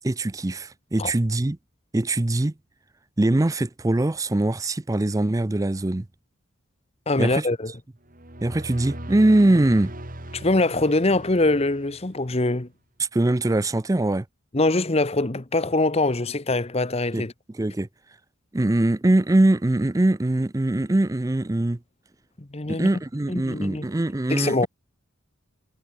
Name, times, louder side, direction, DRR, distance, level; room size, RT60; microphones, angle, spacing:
voice 1, 0.0-1.6 1.9-2.5 3.2-6.1 7.2-7.5 8.4-9.9 13.0-14.2 17.1-17.2 17.6-17.9 18.5-21.8 22.7-24.7, right 1 dB, 15° right, 0.4 m, -22 dB
voice 2, 7.1-7.7 10.3-12.7 14.5-17.3 22.4-22.9 23.3-23.9 24.3-24.7, left 2 dB, 30° left, 1.0 m, -23 dB
sound 1, 8.0-12.4, right 1 dB, 40° right, 4.8 m, -39 dB
head